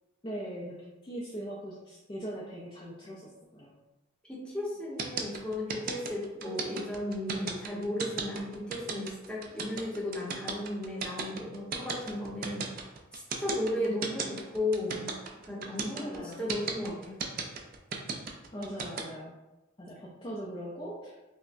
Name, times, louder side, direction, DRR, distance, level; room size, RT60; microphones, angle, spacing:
voice 1, 0.2-0.8 1.0-3.7 13.8-14.3 15.9-16.5 18.5-19.3 19.8-21.2, equal, 25° left, -5 dB, 0.4 m, -40 dB
voice 2, 4.2-12.7 13.1-15.1 15.4-17.2, left 1 dB, 5° left, -5 dB, 0.8 m, -35 dB
sound 1, 5.0-19.0, right 5 dB, 45° right, 0.4 m, -35 dB
5.4 x 2.1 x 2.5 m, 1.0 s
head